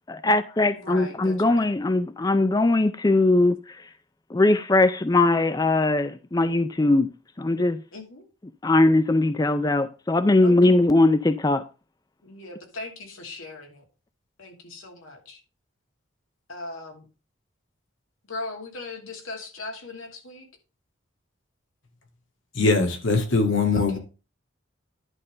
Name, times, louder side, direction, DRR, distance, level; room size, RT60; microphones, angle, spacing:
voice 1, 0.1-3.9 4.3-7.1 7.4-7.8 8.6-11.6, left 2 dB, 20° left, 0.4 m, -20 dB
voice 2, 0.7-1.7 7.9-8.3 10.4-10.6 12.2-13.8 14.4-15.4 16.5-17.0 18.3-20.5 23.1-24.0, left 2 dB, 90° left, 2.7 m, -39 dB
voice 3, 22.5-24.0, left 3 dB, 70° left, 2.0 m, -21 dB
11.0 x 3.6 x 6.6 m
head